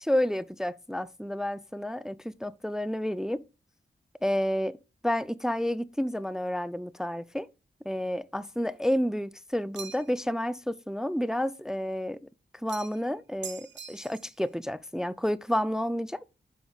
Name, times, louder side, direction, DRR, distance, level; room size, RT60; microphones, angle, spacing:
voice 1, 0.0-3.4 4.2-4.8 5.0-7.5 7.9-12.2 12.5-16.2, equal, 5° right, 0.3 m, -30 dB
sound 1, 9.7-10.2 12.7-13.1 13.4-14.4, right 7 dB, 90° right, 0.5 m, -43 dB
10.5 x 5.0 x 2.3 m
cardioid pair, 55°, 18 cm